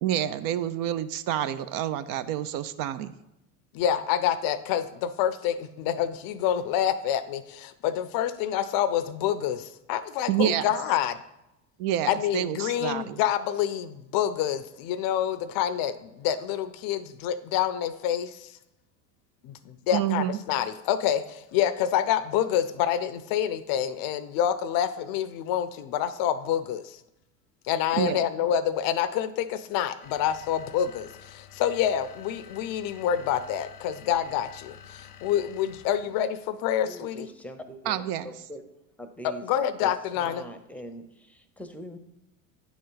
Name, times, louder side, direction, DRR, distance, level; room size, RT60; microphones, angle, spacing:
voice 1, 0.0-3.1 10.3-10.6 11.8-13.2 19.9-20.4 28.0-28.2 37.9-38.3, right 11 dB, 50° right, 13 dB, 0.5 m, -28 dB
voice 2, 3.7-11.2 12.1-18.6 19.4-27.0 27.6-37.3 39.4-40.4, left 10 dB, 50° left, 14 dB, 0.5 m, -27 dB
sound 1, 30.0-36.2, left 9 dB, 85° left, 0.8 m, -49 dB
voice 3, 36.8-38.6 39.0-39.5 39.8-39.9 40.2-42.0, equal, 5° left, 8 dB, 0.7 m, -43 dB
9.5 x 4.0 x 3.9 m, 0.89 s
hypercardioid pair, 85°, 44 cm